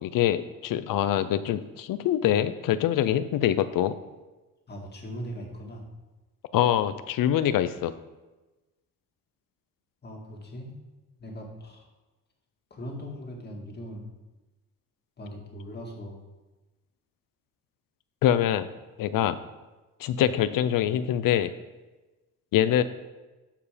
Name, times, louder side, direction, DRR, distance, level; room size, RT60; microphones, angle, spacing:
voice 1, 0.0-3.9 6.5-7.9 18.2-18.7 19.0-19.4 20.0-21.5 22.5-22.8, left 11 dB, 85° left, 13 dB, 0.6 m, -24 dB
voice 2, 4.7-5.8 10.0-10.8 11.2-11.9 12.7-14.1 15.2-16.2 20.2-20.3, equal, 30° left, 1 dB, 1.9 m, -40 dB
12.5 x 4.8 x 5.1 m, 1.1 s
cardioid pair, 140°, 32 cm